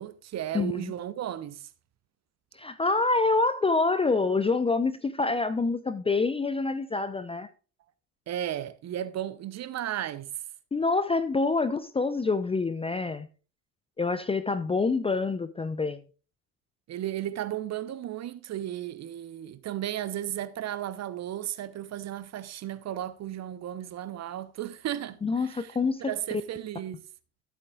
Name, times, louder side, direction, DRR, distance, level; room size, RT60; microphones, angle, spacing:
voice 1, 0.0-1.7 8.3-10.4 16.9-27.0, right 12 dB, 35° right, 0.8 m, -35 dB
voice 2, 0.5-0.9 2.6-7.5 10.7-13.3 14.0-16.0 25.2-26.0, left 3 dB, 10° left, 0.6 m, -26 dB
14.0 x 8.5 x 2.4 m
figure-of-eight pair, 60°, 47 cm